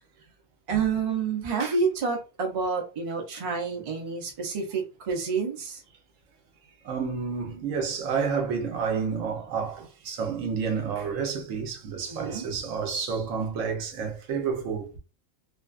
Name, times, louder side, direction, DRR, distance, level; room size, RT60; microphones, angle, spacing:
voice 1, 0.7-5.8 12.1-12.5, right 5 dB, 40° right, 0.5 m, -28 dB
voice 2, 6.8-14.9, right 6 dB, 80° right, 1.0 m, -30 dB
2.5 x 2.2 x 2.4 m
omnidirectional pair, 1.3 m